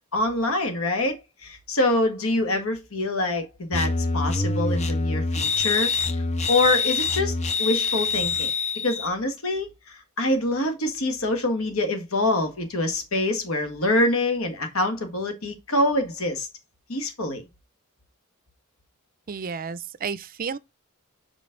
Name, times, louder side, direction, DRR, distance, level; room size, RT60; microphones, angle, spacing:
voice 1, 0.1-1.2 1.4-5.9 6.5-8.5 8.8-16.5 16.9-17.4, left 2 dB, 70° left, 1.7 m, -25 dB
sound 1, 3.7-9.1, left 4 dB, 30° left, 0.7 m, -25 dB
voice 2, 19.3-20.6, right 6 dB, 40° right, 0.5 m, -32 dB
5.3 x 5.1 x 3.8 m
head